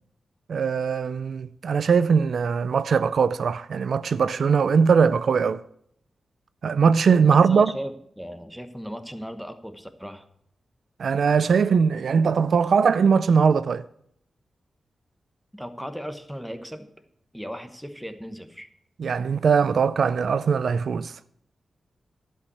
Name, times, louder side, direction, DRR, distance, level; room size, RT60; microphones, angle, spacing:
voice 1, 0.5-5.6 6.6-7.8 11.0-13.8 19.0-21.1, right 6 dB, 75° right, 0.3 m, -20 dB
voice 2, 7.3-10.2 15.5-16.9 17.3-18.7, equal, ahead, 1.0 m, -37 dB
11.5 x 5.4 x 8.3 m
wide cardioid pair, 90°, 0 cm